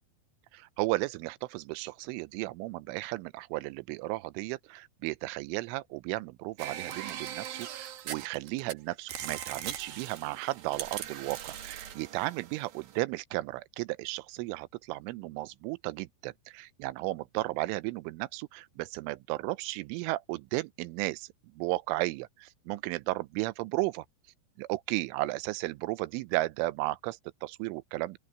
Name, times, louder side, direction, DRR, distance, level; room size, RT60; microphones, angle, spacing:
voice 1, 0.5-21.3 21.6-24.1 24.6-28.2, right 20 dB, 85° right, 3.1 m, -34 dB
sound 1, 6.6-8.7 9.1-13.0, right 10 dB, 60° right, 2.8 m, -40 dB
open air
omnidirectional pair, 5.7 m